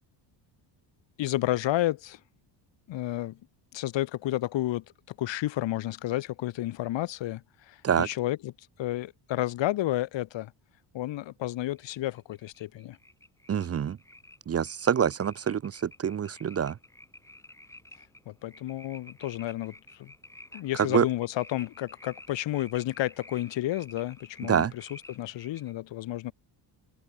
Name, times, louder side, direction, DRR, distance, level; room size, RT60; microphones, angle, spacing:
voice 1, 1.2-2.2 2.9-3.4 3.7-8.5 8.8-10.5 10.9-13.0 18.2-20.1 20.5-26.3, left 15 dB, 75° left, 6.8 m, -31 dB
sound 1, 11.8-25.7, left 1 dB, 5° left, 6.3 m, -52 dB
voice 2, 13.5-14.0 14.5-16.8 20.9-21.0 24.5-24.7, right 8 dB, 30° right, 1.1 m, -26 dB
open air
cardioid pair, 150°, 45 cm